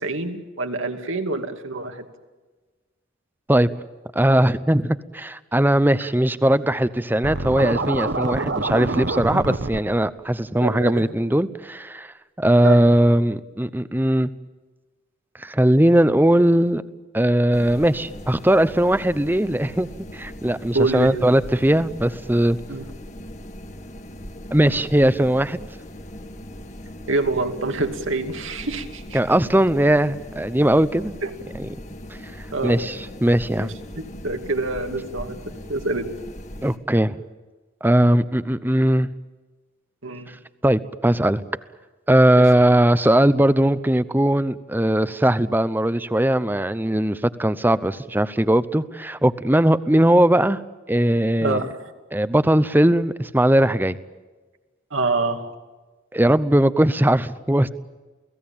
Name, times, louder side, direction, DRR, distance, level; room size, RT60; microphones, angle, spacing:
voice 1, 0.0-2.0 10.6-11.0 12.6-12.8 20.7-21.1 22.7-22.9 27.1-29.2 31.2-31.3 32.5-32.8 33.6-35.4 35.7-36.1 40.0-40.3 42.4-42.5 51.4-51.9 54.9-55.5, right 2 dB, 80° right, 5 dB, 2.6 m, -26 dB
voice 2, 4.1-14.3 15.4-16.8 17.1-22.6 24.5-25.6 29.1-31.1 31.6-31.7 32.6-33.7 36.6-37.2 37.8-39.1 40.6-41.4 42.1-50.6 50.9-51.6 52.1-54.0 56.1-57.7, right 1 dB, 10° right, 14 dB, 0.7 m, -19 dB
Scratching (performance technique), 7.2-9.8, right 2 dB, 60° right, 1.4 m, -26 dB
sound 1, 17.5-36.8, left 1 dB, 35° left, 1.9 m, -39 dB
29.0 x 18.5 x 8.8 m, 1.3 s
head